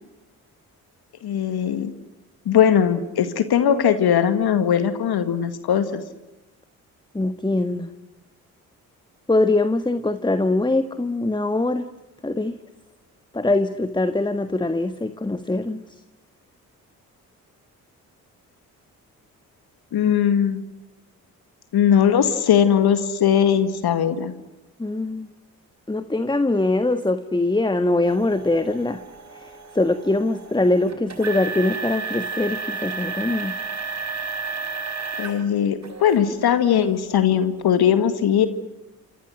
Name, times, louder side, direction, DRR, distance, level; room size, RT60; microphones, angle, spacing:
voice 1, 1.2-1.9 2.5-6.0 19.9-20.6 21.7-24.3 35.2-38.5, left 8 dB, 55° left, 10 dB, 2.0 m, -19 dB
voice 2, 7.1-7.9 9.3-11.8 12.2-12.5 13.3-15.8 24.8-25.3 25.9-29.0 29.3-33.6, left 2 dB, 10° left, 11 dB, 1.5 m, -22 dB
sound 1, 28.0-35.4 35.8-36.2 36.8-36.9 37.6-37.7, right 4 dB, 35° right, 4.5 m, -32 dB
28.0 x 27.5 x 6.4 m, 0.98 s
figure-of-eight pair, 40°, 44 cm